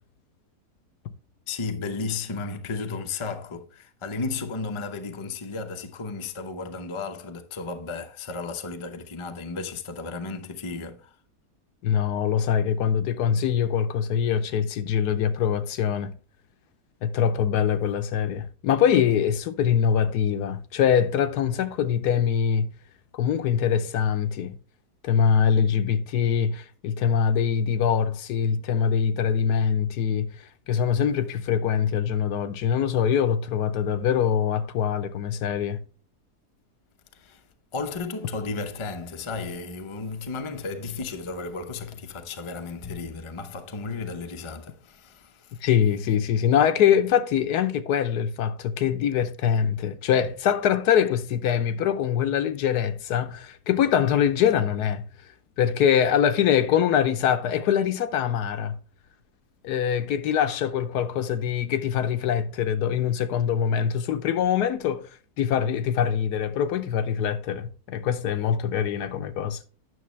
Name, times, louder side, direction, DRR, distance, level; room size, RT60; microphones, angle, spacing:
voice 1, 1.5-11.1 37.1-37.4 37.7-45.6, left 4 dB, 35° left, 0.5 m, -34 dB
voice 2, 11.8-16.1 17.0-22.7 23.1-24.6 25.0-30.3 30.7-35.8 45.6-55.0 55.6-58.7 59.6-65.1 65.4-69.6, left 8 dB, 75° left, 1.2 m, -23 dB
9.4 x 6.3 x 3.2 m
omnidirectional pair, 1.7 m